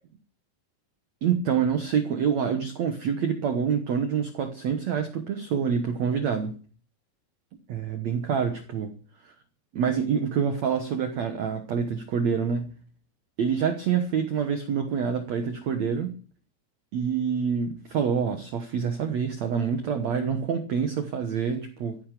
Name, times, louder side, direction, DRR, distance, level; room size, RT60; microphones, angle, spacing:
voice 1, 1.2-6.6 7.7-8.9 9.2-9.3 9.7-12.7 13.4-16.1 16.9-22.0, right 7 dB, 90° right, 8 dB, 1.5 m, -26 dB
15.5 x 10.0 x 6.7 m, 0.40 s
omnidirectional pair, 5.2 m